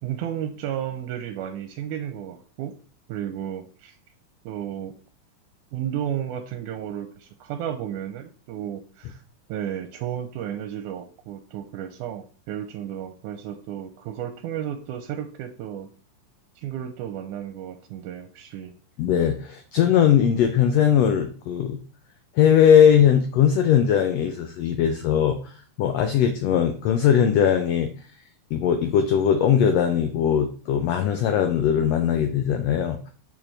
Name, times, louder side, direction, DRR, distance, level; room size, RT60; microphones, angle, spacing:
voice 1, 0.0-2.8 3.1-4.0 4.4-4.9 5.7-9.2 9.5-15.9 16.6-18.7, right 10 dB, 85° right, 7 dB, 2.0 m, -33 dB
voice 2, 19.0-21.8 22.4-25.4 25.8-27.9 28.5-33.0, left 8 dB, 85° left, 7 dB, 1.4 m, -20 dB
6.6 x 6.2 x 3.3 m, 0.39 s
omnidirectional pair, 3.7 m